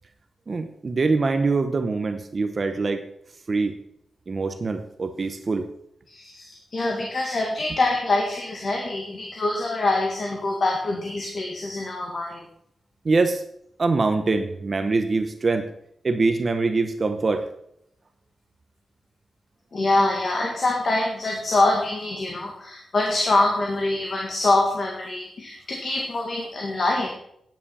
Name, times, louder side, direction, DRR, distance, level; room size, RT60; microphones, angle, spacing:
voice 1, 0.5-3.0 3.5-3.7 4.3-5.7 13.0-13.4 13.8-15.7 16.0-17.5, right 3 dB, 40° right, 8 dB, 0.8 m, -23 dB
voice 2, 6.1-12.4 19.7-27.1, left 2 dB, 50° left, 0 dB, 1.9 m, -24 dB
10.0 x 9.3 x 5.5 m, 0.74 s
wide cardioid pair, 135°, 0 cm